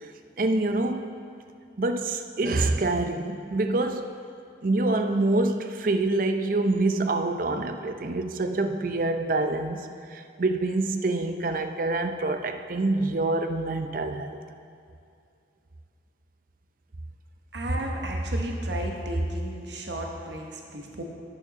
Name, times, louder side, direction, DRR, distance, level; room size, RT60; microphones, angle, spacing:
voice 1, 0.4-1.1 1.8-4.2 4.6-14.4, right 2 dB, 45° right, 7 dB, 0.5 m, -26 dB
voice 2, 17.5-21.0, right 1 dB, 70° right, 1 dB, 1.0 m, -31 dB
9.1 x 6.7 x 5.9 m, 2.5 s
head